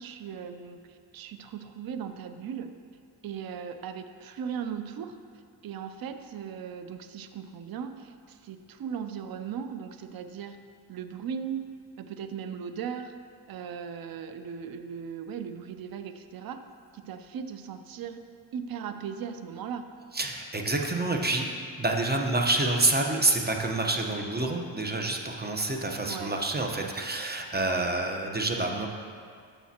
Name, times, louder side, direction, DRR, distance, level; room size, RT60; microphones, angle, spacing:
voice 1, 0.0-2.7 3.2-5.1 5.6-10.6 10.9-11.6 12.0-13.1 13.5-16.6 16.9-18.2 18.5-19.8 26.0-26.4 26.8-27.1 27.9-28.0, right 7 dB, 55° right, 9 dB, 0.6 m, -38 dB
voice 2, 20.1-21.5 21.8-28.9, right 2 dB, 20° right, 2 dB, 1.0 m, -27 dB
12.5 x 6.9 x 2.9 m, 2.1 s
cardioid pair, 70°, 44 cm